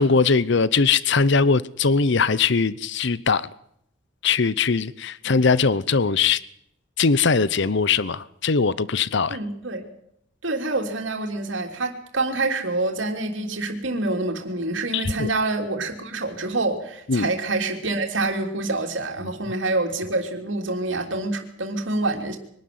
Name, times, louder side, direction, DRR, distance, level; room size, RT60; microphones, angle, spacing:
voice 1, 0.0-3.5 4.2-6.4 7.0-9.4 14.9-15.3 17.1-17.3, left 4 dB, 65° left, 0.8 m, -20 dB
voice 2, 9.3-9.9 10.4-22.4, right 2 dB, 70° right, 3.3 m, -26 dB
23.5 x 12.0 x 9.5 m
head